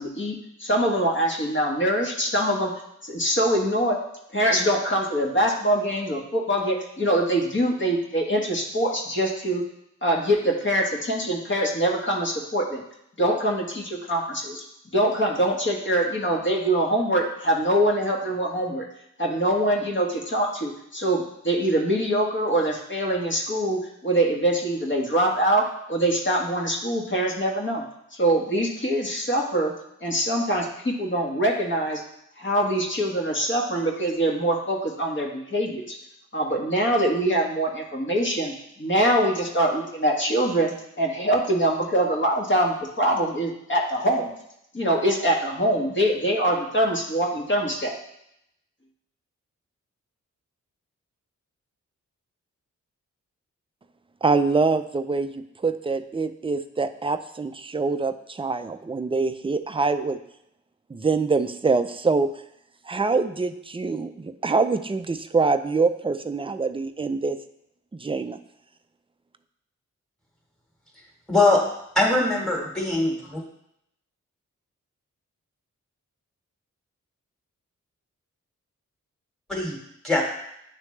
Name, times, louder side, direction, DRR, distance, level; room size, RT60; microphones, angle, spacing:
voice 1, 0.0-2.7 3.0-4.0 4.3-9.6 10.0-12.8 13.2-14.6 14.9-18.8 19.2-27.8 28.1-29.7 30.0-32.0 32.4-36.0 36.3-44.3 44.7-48.0, right 1 dB, 35° left, 0 dB, 1.5 m, -24 dB
voice 2, 54.2-60.2 60.9-62.3 62.9-67.4 67.9-68.4, right 4 dB, 15° right, 9 dB, 0.4 m, -25 dB
voice 3, 71.3-71.6 72.0-73.4 79.5-79.8 80.0-80.2, left 2 dB, ahead, -2 dB, 1.8 m, -21 dB
9.4 x 3.2 x 3.2 m, 0.78 s
cardioid pair, 45°, 31 cm